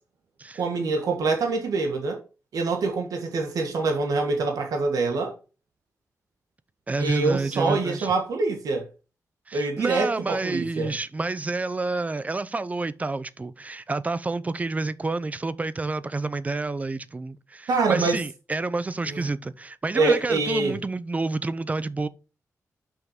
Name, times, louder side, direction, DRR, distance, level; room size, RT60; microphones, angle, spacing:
voice 1, 0.5-2.2 2.5-5.3 7.0-8.9 9.5-10.9 17.7-18.2 19.0-19.3 19.9-20.8, right 3 dB, 90° right, 1.5 m, -25 dB
voice 2, 6.9-8.1 9.5-22.1, right 3 dB, 25° right, 0.5 m, -29 dB
6.0 x 5.7 x 5.1 m
wide cardioid pair, 115°, 6 cm